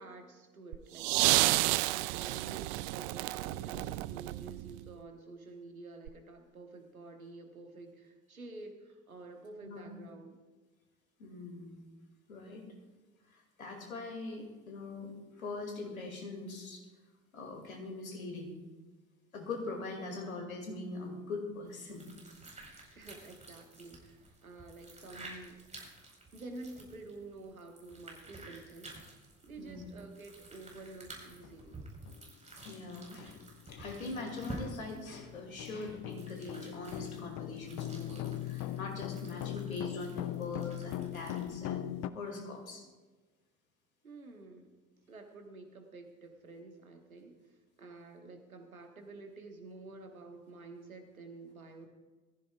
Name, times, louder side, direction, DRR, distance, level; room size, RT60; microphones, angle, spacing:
voice 1, 0.0-10.4 19.9-20.4 22.9-25.6 26.3-29.0 29.4-31.8 44.0-44.7 45.1-51.9, right 3 dB, 85° right, 5 dB, 1.6 m, -50 dB
sound 1, 0.7-4.9 6.1-6.2, right 20 dB, 50° right, 0.4 m, -31 dB
voice 2, 11.2-11.8 12.3-12.6 13.3-16.8 17.3-18.5 19.3-22.1 29.6-29.8 32.7-33.4 33.7-41.9 42.1-42.8, left 3 dB, 80° left, 2 dB, 2.6 m, -42 dB
sound 2, 21.7-41.6, right 2 dB, 15° right, 4.6 m, -51 dB
sound 3, 31.4-31.5 32.1-32.2 32.6-42.1, left 13 dB, 40° left, 0.6 m, -41 dB
21.5 x 14.5 x 2.4 m, 1.3 s
figure-of-eight pair, 65°, 41 cm